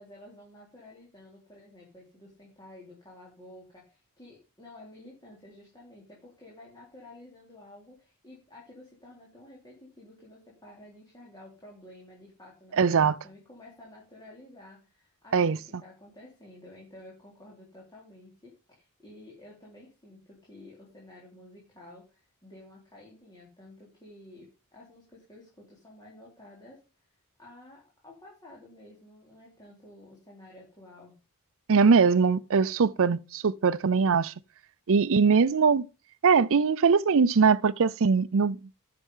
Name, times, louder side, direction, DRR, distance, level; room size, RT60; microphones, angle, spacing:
voice 1, 0.0-26.8 27.4-31.1, left 1 dB, 20° left, 3.7 m, -51 dB
voice 2, 12.7-13.1 15.3-15.6 31.7-34.3 34.9-35.9 36.2-38.6, right 5 dB, 65° right, 0.5 m, -21 dB
11.0 x 6.8 x 5.6 m
head